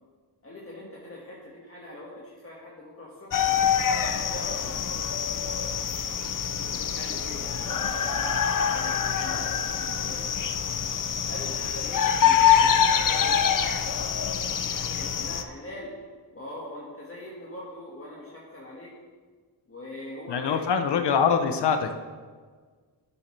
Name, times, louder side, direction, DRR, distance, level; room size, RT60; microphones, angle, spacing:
voice 1, 0.4-3.5 4.0-5.0 6.5-10.3 11.3-12.8 13.0-14.3 14.6-15.9 16.3-18.9 19.7-21.1, left 1 dB, 35° left, -6 dB, 1.8 m, -42 dB
sound 1, 3.3-15.4, left 8 dB, 50° left, 0.6 m, -25 dB
voice 2, 20.3-21.9, left 6 dB, 80° left, 7 dB, 0.8 m, -24 dB
11.0 x 7.1 x 3.3 m, 1.5 s
cardioid pair, 80°, 40 cm